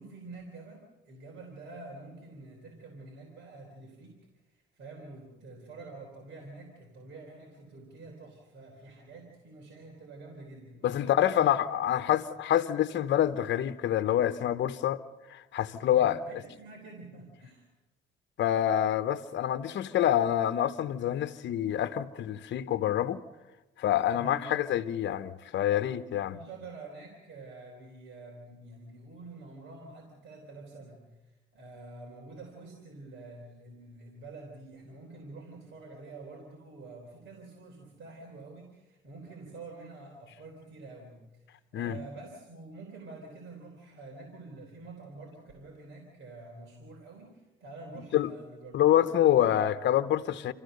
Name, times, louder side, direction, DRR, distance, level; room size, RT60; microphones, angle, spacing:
voice 1, 0.0-4.2 4.5-11.5 11.9-12.2 15.9-17.7 24.1-24.5 26.3-49.7, right 3 dB, 70° right, 3.8 m, -47 dB
voice 2, 10.8-15.0 15.3-16.2 18.4-23.2 23.8-26.4 41.7-42.0 48.1-48.3 48.7-50.5, left 11 dB, 65° left, 0.9 m, -26 dB
27.0 x 15.0 x 6.6 m
cardioid pair, 90°, 20 cm